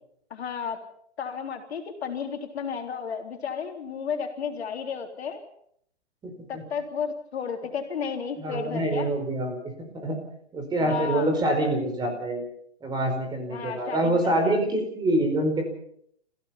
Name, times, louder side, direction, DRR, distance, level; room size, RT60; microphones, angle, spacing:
voice 1, 0.3-0.8 1.2-5.4 6.5-9.1 10.8-11.3 13.5-14.6, left 6 dB, 65° left, 4 dB, 3.8 m, -33 dB
voice 2, 6.2-6.6 8.4-10.2 10.5-12.4 12.8-15.7, right 1 dB, 10° right, 4 dB, 4.9 m, -26 dB
28.5 x 16.0 x 5.9 m, 0.68 s
hypercardioid pair, 140°, 34 cm